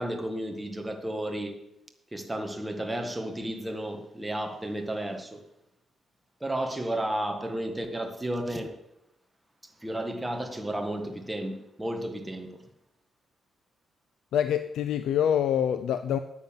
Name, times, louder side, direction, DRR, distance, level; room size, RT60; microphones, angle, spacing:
voice 1, 0.0-1.6 2.1-5.4 6.4-8.8 9.8-12.6, right 1 dB, 10° right, 1.6 m, -33 dB
voice 2, 14.3-16.2, left 9 dB, 75° left, 0.6 m, -25 dB
9.6 x 9.3 x 7.5 m
cardioid pair, 130°, 0 cm